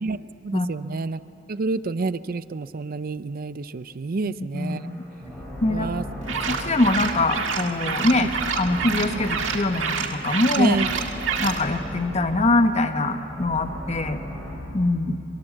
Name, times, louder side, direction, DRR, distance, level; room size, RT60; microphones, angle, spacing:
voice 1, 0.0-1.2 1.5-4.8 5.7-6.0 8.2-8.3 9.1-9.2 10.6-11.0 15.0-15.2, right 3 dB, 50° right, 15 dB, 0.5 m, -28 dB
voice 2, 4.2-5.0 5.6-5.9 6.5-8.3 8.5-10.8 11.4-14.2 14.7-15.2, left 2 dB, 35° left, 7 dB, 1.2 m, -23 dB
sound 1, 4.5-14.5, equal, 10° left, 6.6 m, -37 dB
sound 2, 6.2-11.6, right 6 dB, 80° right, 1.7 m, -28 dB
25.0 x 23.5 x 7.6 m, 2.8 s
head